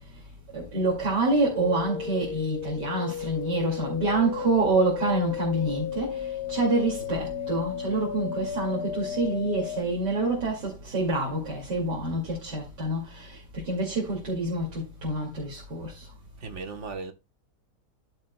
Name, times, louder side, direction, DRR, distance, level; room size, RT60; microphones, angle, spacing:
voice 1, 0.5-16.1, right 2 dB, 80° right, 3.2 m, -27 dB
sound 1, 1.5-9.8, left 9 dB, 75° left, 1.2 m, -34 dB
voice 2, 16.4-17.1, right 4 dB, 45° right, 1.5 m, -36 dB
13.5 x 6.5 x 2.3 m
omnidirectional pair, 1.8 m